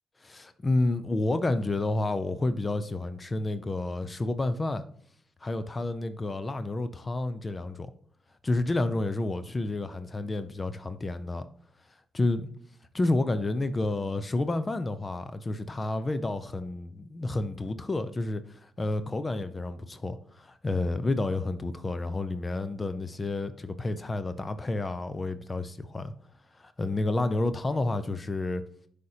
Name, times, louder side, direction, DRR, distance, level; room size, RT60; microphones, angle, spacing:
voice 1, 0.2-4.8 5.4-7.9 8.4-11.4 12.1-12.5 12.9-26.1 26.5-28.6, left 2 dB, 30° left, 0.6 m, -30 dB
9.3 x 5.1 x 2.8 m
hypercardioid pair, 50°, 0 cm